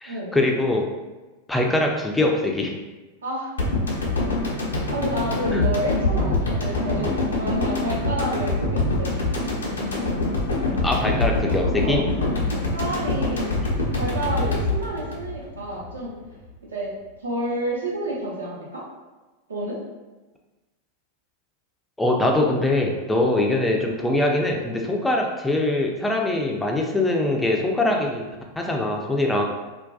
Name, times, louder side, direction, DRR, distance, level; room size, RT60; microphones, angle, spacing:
voice 1, 0.0-0.9 1.5-2.8 5.5-5.6 6.3-6.4 10.8-12.0 22.0-29.4, left 2 dB, 5° left, 1 dB, 0.4 m, -23 dB
voice 2, 3.2-3.6 4.9-9.3 11.8-12.0 12.7-13.5 13.9-16.1 16.7-16.9 17.2-18.8 19.5-19.8, right 1 dB, 75° right, -5 dB, 0.7 m, -29 dB
sound 1, 3.6-15.9 16.2-16.3, left 2 dB, 70° left, 0.5 m, -25 dB
2.4 x 2.2 x 2.3 m, 1.2 s
figure-of-eight pair, 90°, 0 cm